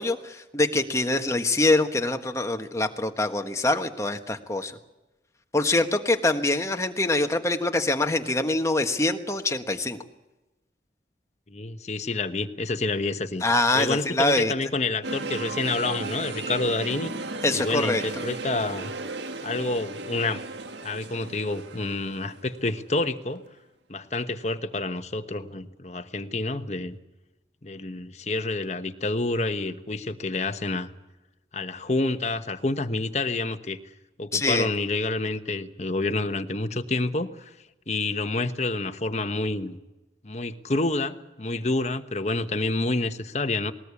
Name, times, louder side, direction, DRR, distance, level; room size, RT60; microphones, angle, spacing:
voice 1, 0.0-4.8 5.5-10.0 13.4-14.5 17.4-18.0 34.3-34.7, left 2 dB, 15° left, 6 dB, 1.4 m, -24 dB
voice 2, 11.5-13.4 13.7-17.1 17.5-18.9 19.4-20.4 20.8-23.4 23.9-27.0 27.6-30.9 31.5-33.8 34.2-37.5 37.9-39.8 40.2-43.7, left 2 dB, 40° left, 8 dB, 1.2 m, -28 dB
sound 1, 15.0-23.1 23.5-23.6, right 3 dB, 85° right, 1.6 m, -35 dB
20.5 x 19.0 x 8.4 m, 1.0 s
head